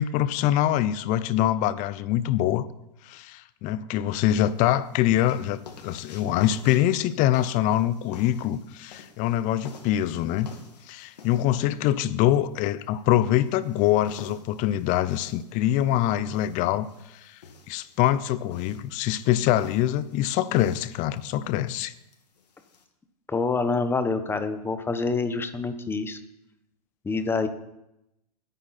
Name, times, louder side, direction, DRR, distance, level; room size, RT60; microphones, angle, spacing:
voice 1, 0.0-2.7 3.0-10.5 10.9-16.9 17.2-17.4 17.7-21.9, left 12 dB, 40° left, 16 dB, 0.8 m, -24 dB
sound 1, 4.3-22.8, left 5 dB, 80° left, 2.5 m, -49 dB
voice 2, 23.3-26.2 27.0-27.5, left 4 dB, 10° left, 9 dB, 1.2 m, -26 dB
20.0 x 9.2 x 4.3 m, 0.88 s
hypercardioid pair, 120°, 21 cm